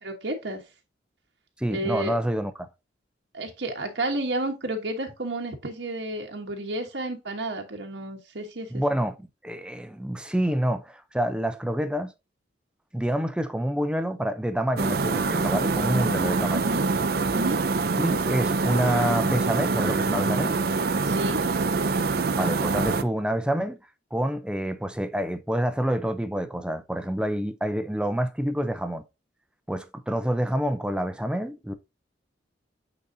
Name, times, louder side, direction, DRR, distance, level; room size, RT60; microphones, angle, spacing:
voice 1, 0.0-0.6 1.7-2.2 3.3-8.8 16.5-16.9 17.3-17.6 21.0-21.4, right 2 dB, 70° right, 1.2 m, -31 dB
voice 2, 1.6-2.5 8.7-9.2 9.4-12.1 12.9-16.7 18.0-20.5 22.4-23.8 24.1-29.0 29.7-31.7, equal, 5° right, 0.6 m, -27 dB
sound 1, 14.8-23.0, right 4 dB, 55° right, 0.6 m, -25 dB
8.6 x 4.1 x 2.7 m
head